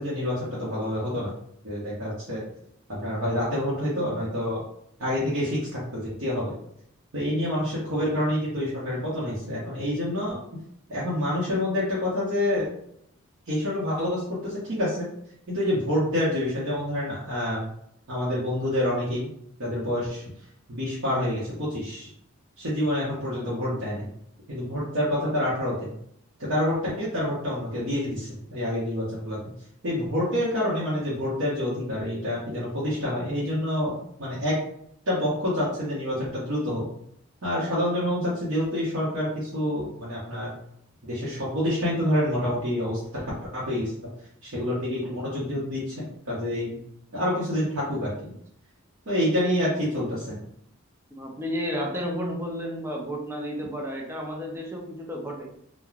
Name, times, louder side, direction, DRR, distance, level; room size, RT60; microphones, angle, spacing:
voice 1, 0.0-1.3 1.6-2.5 2.9-4.6 5.0-6.5 7.1-10.4 10.9-12.7 13.5-15.1 15.5-17.7 18.1-19.3 19.6-20.2 20.7-22.1 22.6-24.1 24.5-25.9 26.4-29.4 29.8-34.6 35.1-36.9 37.4-40.5 41.0-44.1 44.4-46.8 47.1-48.3 49.1-50.4, left 1 dB, 65° right, -8 dB, 0.8 m, -27 dB
voice 2, 51.1-55.5, equal, 10° right, -1 dB, 0.5 m, -32 dB
3.1 x 2.1 x 2.4 m, 0.72 s
head